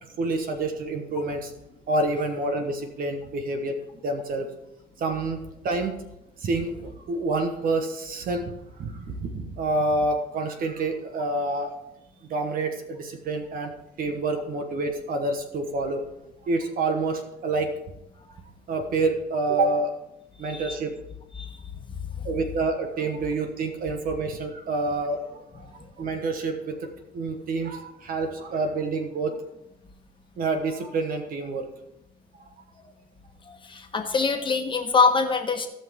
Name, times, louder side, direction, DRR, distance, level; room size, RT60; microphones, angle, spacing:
voice 1, 0.0-1.5 1.9-3.7 4.0-4.5 5.0-5.9 6.4-8.4 8.8-11.7 12.3-13.7 14.0-16.0 16.4-17.7 18.7-19.9 20.4-20.9 22.2-26.9 27.1-29.3 30.4-31.7, right 2 dB, 55° right, 5 dB, 1.4 m, -28 dB
voice 2, 20.4-20.7 21.4-21.5 22.1-22.3 33.5-35.7, left 4 dB, 30° left, 4 dB, 1.4 m, -24 dB
17.0 x 5.8 x 3.6 m, 0.85 s
cardioid pair, 110°, 17 cm